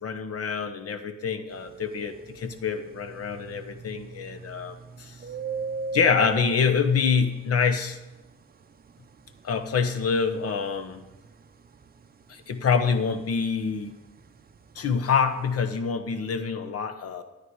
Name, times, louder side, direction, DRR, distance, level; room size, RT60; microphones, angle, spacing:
voice 1, 0.0-5.2 5.9-8.0 9.4-11.0 12.3-13.9 14.7-17.2, left 6 dB, 50° left, 8 dB, 1.1 m, -26 dB
sound 1, 1.5-15.8, right 4 dB, 30° right, 0.7 m, -40 dB
11.5 x 9.4 x 4.8 m, 1.0 s
cardioid pair, 90°, 30 cm